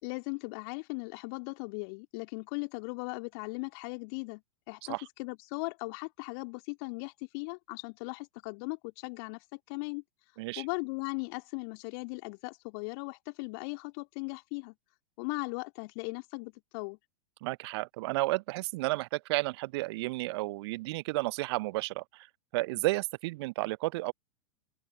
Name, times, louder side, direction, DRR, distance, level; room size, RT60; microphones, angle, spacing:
voice 1, 0.0-4.4 4.7-10.0 10.6-14.7 15.2-17.0, left 33 dB, 45° left, 2.5 m, -38 dB
voice 2, 17.4-22.3 22.5-24.1, right 21 dB, 45° right, 0.8 m, -32 dB
open air
figure-of-eight pair, 95°, 18 cm